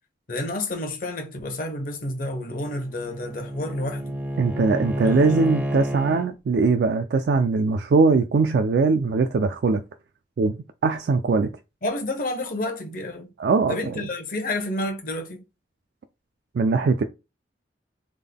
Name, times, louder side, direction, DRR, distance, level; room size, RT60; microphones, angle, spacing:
voice 1, 0.3-4.2 5.0-5.5 11.8-13.3 13.7-15.4, left 1 dB, 50° left, 0.8 m, -30 dB
Bowed string instrument, 2.2-6.3, equal, 5° right, 0.5 m, -30 dB
voice 2, 4.4-9.8 10.4-10.5 10.8-11.5 13.4-14.0 16.5-17.0, right 4 dB, 65° right, 0.3 m, -21 dB
3.6 x 2.2 x 3.4 m
head